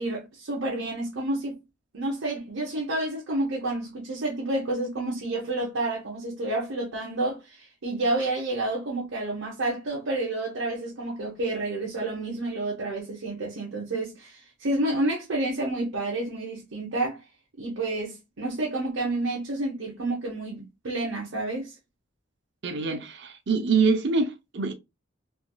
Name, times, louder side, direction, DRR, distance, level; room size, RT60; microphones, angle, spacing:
voice 1, 0.0-1.6 1.9-17.2 17.6-21.8, right 2 dB, 75° right, 0.9 m, -29 dB
voice 2, 22.6-24.7, right 4 dB, 55° right, 0.6 m, -25 dB
3.3 x 2.5 x 2.2 m
head